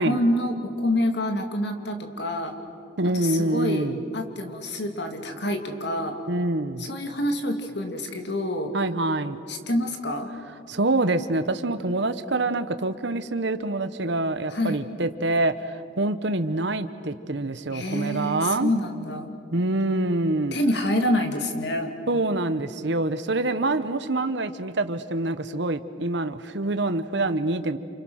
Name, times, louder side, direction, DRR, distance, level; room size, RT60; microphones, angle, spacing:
voice 1, 0.0-2.5 3.1-6.2 6.8-8.7 9.5-10.3 14.5-14.8 17.7-19.3 20.5-21.9, left 1 dB, 55° left, 5 dB, 2.5 m, -27 dB
voice 2, 3.0-4.0 6.3-6.9 8.7-9.4 10.7-18.7 19.5-20.6 22.1-27.8, right 2 dB, 60° right, 11 dB, 1.0 m, -26 dB
29.0 x 28.0 x 6.4 m, 2.5 s
head